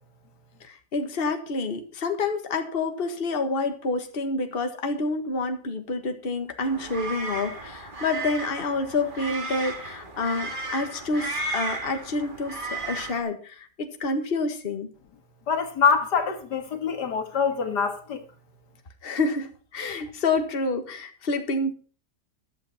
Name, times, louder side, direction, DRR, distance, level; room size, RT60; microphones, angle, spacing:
voice 1, 0.6-14.9 19.0-21.7, left 3 dB, 35° left, 1.7 m, -28 dB
sound 1, 6.6-13.2, right 3 dB, 30° right, 2.1 m, -34 dB
voice 2, 15.5-18.2, left 6 dB, 80° left, 2.3 m, -24 dB
13.5 x 11.5 x 4.2 m
omnidirectional pair, 1.8 m